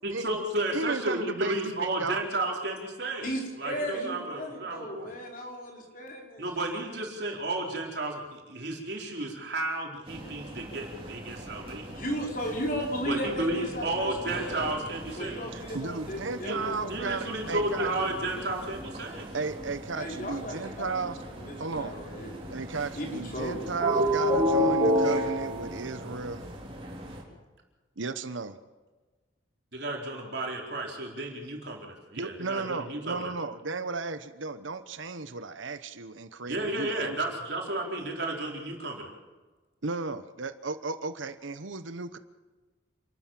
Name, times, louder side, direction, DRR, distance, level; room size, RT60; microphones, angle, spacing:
voice 1, 0.0-5.1 6.4-11.9 13.0-15.4 16.4-16.6 16.9-19.3 29.7-33.3 36.5-39.1, right 2 dB, 60° right, 0 dB, 4.4 m, -33 dB
voice 2, 0.7-2.3 15.5-17.9 19.3-21.2 21.6-21.9 22.5-26.4 28.0-28.6 32.2-37.4 39.8-42.2, right 4 dB, 85° right, 11 dB, 1.1 m, -34 dB
voice 3, 3.2-6.5 11.9-14.4 15.2-17.1 20.0-20.9 21.3-22.4 23.0-23.6, equal, 45° left, 0 dB, 5.2 m, -35 dB
sound 1, 10.1-27.2, equal, 30° right, 3.8 m, -33 dB
28.0 x 13.0 x 7.6 m, 1.3 s
head